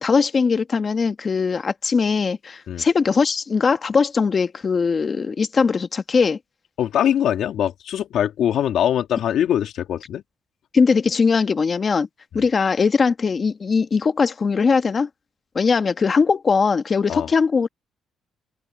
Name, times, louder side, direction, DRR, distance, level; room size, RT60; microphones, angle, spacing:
voice 1, 0.0-6.4 10.7-12.1 12.3-15.1 15.5-17.7, left 5 dB, 40° left, 1.5 m, -20 dB
voice 2, 6.8-10.2 12.3-12.4 17.1-17.3, left 10 dB, 75° left, 3.0 m, -22 dB
open air
cardioid pair, 90°, 0 cm